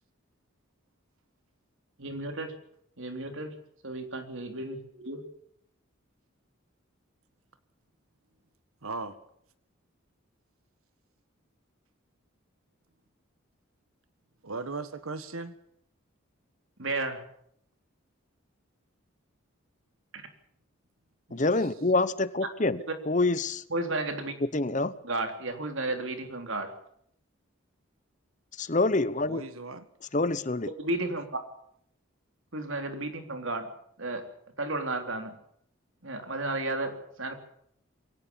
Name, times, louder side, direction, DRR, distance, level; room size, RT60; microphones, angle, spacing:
voice 1, 2.0-2.5 3.0-3.5 3.8-5.2 16.8-17.2 20.1-20.2 23.7-24.3 25.0-26.7 30.8-31.3 32.5-33.7 34.0-34.3 34.6-35.4 36.0-37.4, right 2 dB, 65° right, 6 dB, 3.6 m, -33 dB
voice 2, 8.8-9.2 14.4-15.5 21.3-21.5 29.3-29.9, right 3 dB, 90° right, 12 dB, 1.6 m, -37 dB
voice 3, 21.3-22.8 23.1-23.6 24.5-24.9 28.6-29.4 30.1-30.7, left 2 dB, 35° left, 16 dB, 0.9 m, -26 dB
22.5 x 18.0 x 7.2 m, 0.69 s
head